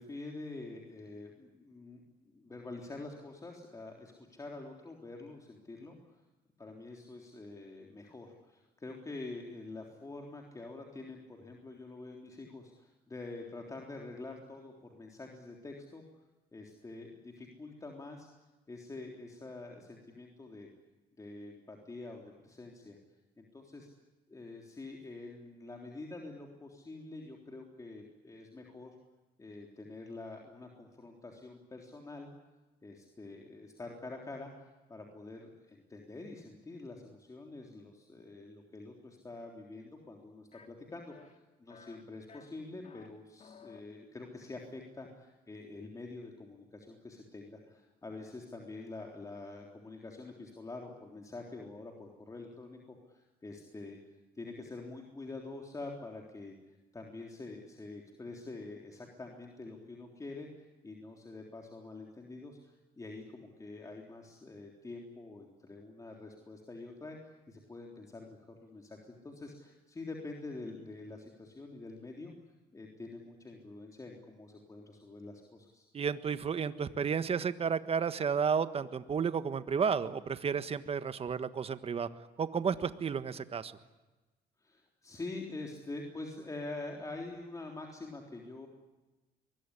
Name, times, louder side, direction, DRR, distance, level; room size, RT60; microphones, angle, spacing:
voice 1, 0.0-6.2 6.6-16.0 16.5-18.3 18.7-20.7 21.2-23.0 23.4-23.9 24.3-28.9 29.4-32.3 32.8-54.0 54.4-56.5 56.9-72.3 72.7-75.9 84.6-88.7, left 2 dB, 20° left, 1 dB, 3.6 m, -46 dB
sound 1, 40.5-40.7 41.1-41.4 41.7-42.0 42.3-43.1 43.4-43.8, left 6 dB, 40° left, 2.8 m, -55 dB
voice 2, 75.9-82.1 82.4-83.7, right 6 dB, 35° right, 12 dB, 1.5 m, -32 dB
23.5 x 21.5 x 10.0 m, 1.1 s
cardioid pair, 110°, 17 cm